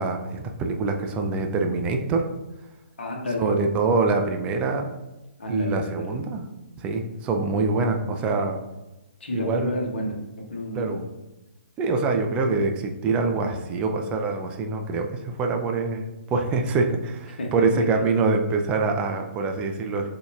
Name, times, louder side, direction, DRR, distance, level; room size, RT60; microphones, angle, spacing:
voice 1, 0.0-2.3 3.4-4.9 5.5-6.4 6.8-8.6 9.3-9.7 10.7-11.1 11.8-20.1, right 3 dB, 15° right, 4 dB, 0.4 m, -25 dB
voice 2, 3.0-3.5 5.4-6.1 9.2-11.0 17.4-18.0, left 1 dB, 60° left, 0 dB, 1.3 m, -31 dB
7.8 x 2.8 x 2.4 m, 1.0 s
figure-of-eight pair, 130°, 7 cm